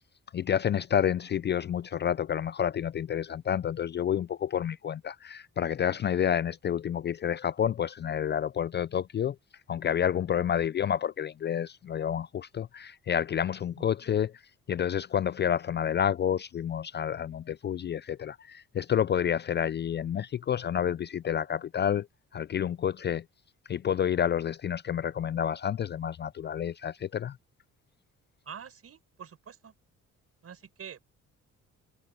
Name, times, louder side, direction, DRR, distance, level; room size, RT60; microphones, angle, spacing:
voice 1, 0.3-9.4 9.7-14.3 14.7-22.1 22.3-23.2 23.7-27.4, left 9 dB, 35° left, 0.4 m, -29 dB
voice 2, 28.5-29.7 30.4-31.0, right 7 dB, 50° right, 5.6 m, -46 dB
cardioid pair, 90°, 30 cm